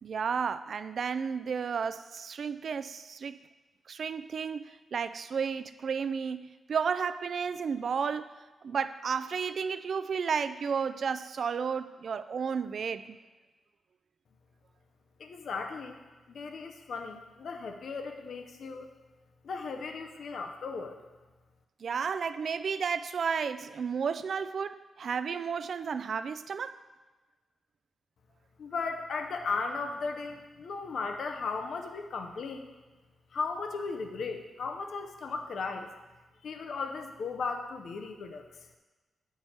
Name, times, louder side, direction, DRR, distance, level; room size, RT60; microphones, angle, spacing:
voice 1, 0.0-3.4 3.9-8.3 8.6-13.2 21.8-26.8, right 6 dB, 60° right, 0.3 m, -32 dB
voice 2, 15.2-16.0 16.3-18.9 19.4-21.0 28.6-32.7 33.3-35.9 36.4-38.4, left 4 dB, 70° left, 0.6 m, -36 dB
8.8 x 4.6 x 4.3 m
cardioid pair, 95°, 0 cm